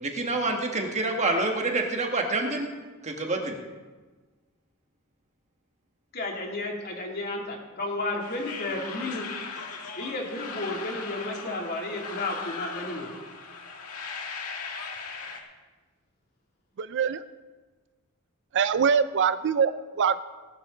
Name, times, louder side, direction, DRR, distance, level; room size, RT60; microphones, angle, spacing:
voice 1, 0.0-2.7 3.0-3.6, right 2 dB, 30° right, 2 dB, 1.6 m, -27 dB
voice 2, 6.1-9.3 10.0-13.2, left 2 dB, 45° left, 0 dB, 2.8 m, -32 dB
sound 1, 8.2-15.4, left 4 dB, 80° left, 2.0 m, -38 dB
voice 3, 16.8-17.2 18.5-20.2, right 6 dB, 55° right, 13 dB, 0.4 m, -24 dB
18.5 x 12.0 x 3.9 m, 1.3 s
head